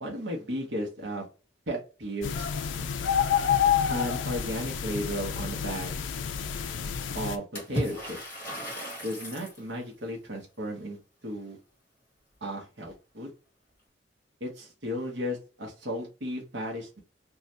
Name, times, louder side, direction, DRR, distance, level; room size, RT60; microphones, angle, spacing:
voice 1, 0.0-1.3 1.7-2.5 3.9-5.9 7.1-8.2 9.0-11.0 11.2-11.6 12.4-13.3 14.4-17.0, equal, 70° right, -1 dB, 1.0 m, -34 dB
sound 1, 2.2-7.4, left 8 dB, 85° left, 0.4 m, -28 dB
Water / Splash splatter, 7.6-9.6, equal, 10° left, 1.3 m, -35 dB
2.7 x 2.4 x 3.2 m, 0.32 s
head